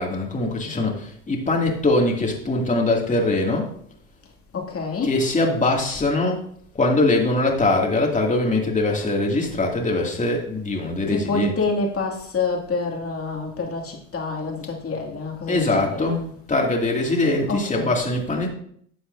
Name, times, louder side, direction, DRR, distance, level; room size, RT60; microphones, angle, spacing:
voice 1, 0.0-3.7 5.0-6.4 6.7-11.6 15.5-18.5, left 2 dB, 20° left, 0 dB, 2.5 m, -22 dB
voice 2, 4.5-5.1 11.1-16.2 17.5-17.9, left 3 dB, 35° left, 1 dB, 2.5 m, -27 dB
12.5 x 7.8 x 2.7 m, 0.63 s
hypercardioid pair, 75°, 38 cm